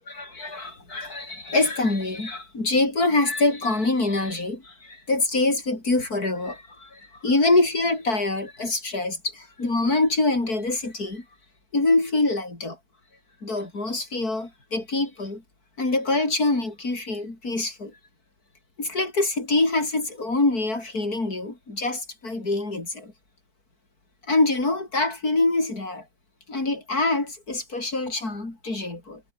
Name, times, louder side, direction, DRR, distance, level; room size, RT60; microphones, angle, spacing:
voice 1, 0.0-11.2 11.7-12.8 13.4-15.4 15.8-18.0 18.8-23.1 24.3-26.0 26.5-29.2, left 2 dB, 65° left, 6.2 m, -25 dB
omnidirectional pair, 1.7 m